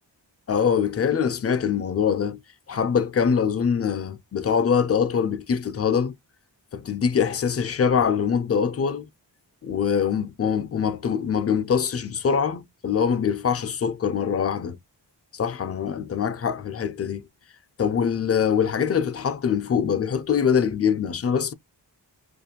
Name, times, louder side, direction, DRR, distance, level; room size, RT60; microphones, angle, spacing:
voice 1, 0.5-2.4 2.7-6.1 6.7-9.1 9.6-14.8 15.3-17.2 17.8-21.5, left 7 dB, 35° left, 0.4 m, -23 dB
2.5 x 2.2 x 2.8 m
wide cardioid pair, 90°, 43 cm